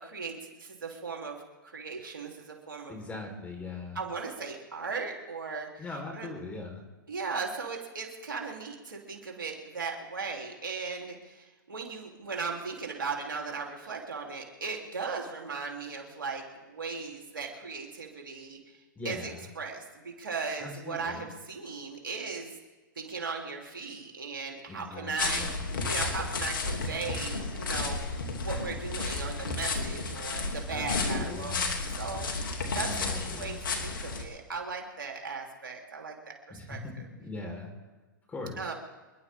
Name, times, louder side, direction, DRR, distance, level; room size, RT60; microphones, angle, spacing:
voice 1, 0.0-1.4 1.6-3.0 4.0-5.8 6.1-6.3 7.1-18.6 19.0-22.5 23.0-28.0 28.4-31.7 32.0-36.2 36.5-36.8 38.6-38.7, right 4 dB, 85° right, 0 dB, 3.5 m, -37 dB
voice 2, 2.9-4.0 5.8-6.8 19.0-19.5 20.6-21.2 24.7-25.6 30.7-31.8 32.8-33.6 36.5-36.9 37.2-37.7 38.3-38.7, left 3 dB, 15° left, 2 dB, 4.4 m, -40 dB
sound 1, 25.2-34.2, left 3 dB, 75° left, 2.9 m, -32 dB
27.5 x 11.5 x 3.7 m, 1.3 s
hypercardioid pair, 120°, 11 cm